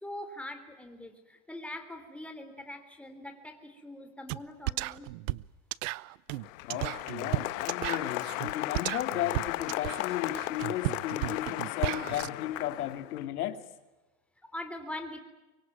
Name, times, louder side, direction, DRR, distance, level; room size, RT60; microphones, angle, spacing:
voice 1, 0.0-5.1 14.4-15.2, left 1 dB, 5° left, 3.5 m, -42 dB
sound 1, 4.3-4.4 4.7-12.3, right 19 dB, 60° right, 0.8 m, -34 dB
Applause, 6.3-13.2, left 19 dB, 60° left, 1.3 m, -36 dB
voice 2, 6.6-13.6, left 12 dB, 90° left, 2.5 m, -35 dB
24.5 x 23.0 x 9.4 m
supercardioid pair, 140°, 43 cm